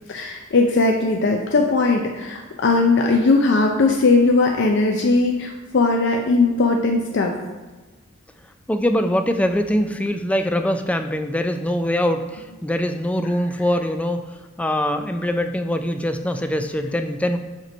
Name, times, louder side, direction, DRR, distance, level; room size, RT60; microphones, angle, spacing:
voice 1, 0.1-7.3, left 3 dB, 60° left, 2 dB, 0.5 m, -19 dB
voice 2, 8.7-14.2 14.6-17.4, equal, 5° left, 7 dB, 0.3 m, -23 dB
6.5 x 3.1 x 5.2 m, 1.2 s
head